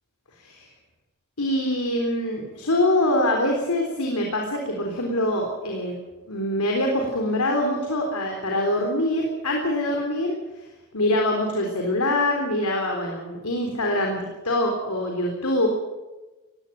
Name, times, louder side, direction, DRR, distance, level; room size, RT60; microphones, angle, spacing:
voice 1, 1.4-5.9 6.3-10.3 10.9-14.2 14.4-15.7, left 1 dB, 85° left, 1 dB, 3.8 m, -24 dB
19.5 x 16.0 x 8.8 m, 1.1 s
head